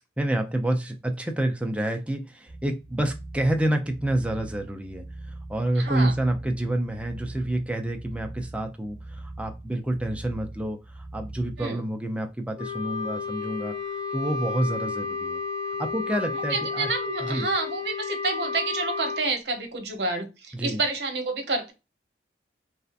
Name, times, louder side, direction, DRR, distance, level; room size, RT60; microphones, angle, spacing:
voice 1, 0.2-13.7 14.1-15.4 15.8-16.9 17.2-17.5 20.5-20.8, right 1 dB, 5° right, 4 dB, 0.5 m, -28 dB
sound 1, 2.5-11.7, right 2 dB, 35° right, 1.1 m, -42 dB
voice 2, 5.8-6.1 11.6-11.8 16.5-21.7, right 3 dB, 70° right, 5 dB, 0.8 m, -29 dB
Wind instrument woodwind instrument, 12.6-19.2, left 4 dB, 20° left, 1.3 m, -32 dB
3.2 x 2.7 x 2.4 m, 0.27 s
head